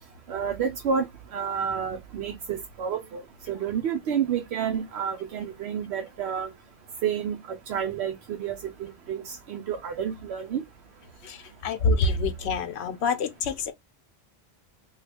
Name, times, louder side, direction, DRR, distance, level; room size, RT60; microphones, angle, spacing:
voice 1, 0.3-1.1 1.3-3.2 3.5-6.5 7.0-10.6, right 7 dB, 80° right, 0.8 m, -30 dB
voice 2, 11.2-13.7, left 3 dB, 85° left, 0.9 m, -26 dB
3.1 x 2.3 x 3.2 m
omnidirectional pair, 1.1 m